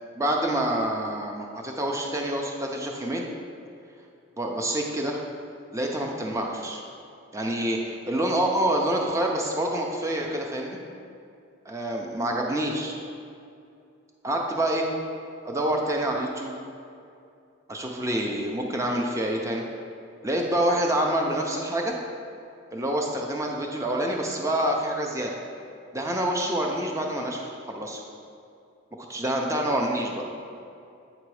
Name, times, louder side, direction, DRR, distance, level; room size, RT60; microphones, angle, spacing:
voice 1, 0.1-3.2 4.4-5.2 5.7-6.8 7.3-10.8 11.7-13.0 14.2-14.9 15.4-16.5 17.7-19.6 20.2-22.0 22.7-25.3 25.9-28.0 29.1-30.2, right 1 dB, 15° right, 1 dB, 0.5 m, -27 dB
8.4 x 3.9 x 4.7 m, 2.5 s
head